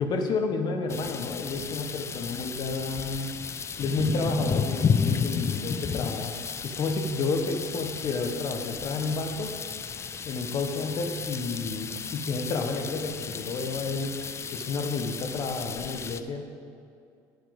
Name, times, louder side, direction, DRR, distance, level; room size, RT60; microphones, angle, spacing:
voice 1, 0.0-3.3 3.8-6.4 6.6-9.5 10.2-14.2 14.5-16.5, left 3 dB, 50° left, 5 dB, 1.3 m, -30 dB
sound 1, 0.9-16.2, left 6 dB, 30° left, 0.5 m, -33 dB
9.6 x 9.4 x 5.3 m, 2.4 s
supercardioid pair, 90°, 9 cm